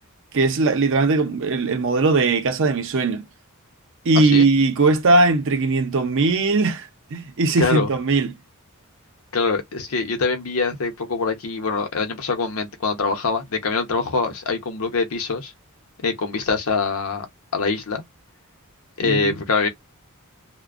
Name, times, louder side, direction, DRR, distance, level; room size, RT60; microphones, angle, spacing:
voice 1, 0.3-3.3 4.1-6.8 7.1-8.3 19.0-19.3, right 3 dB, 60° right, 0.6 m, -19 dB
voice 2, 4.1-4.5 7.6-7.9 9.3-15.5 16.0-17.3 17.5-18.0 19.0-19.7, left 4 dB, 70° left, 0.7 m, -24 dB
2.5 x 2.1 x 2.3 m
head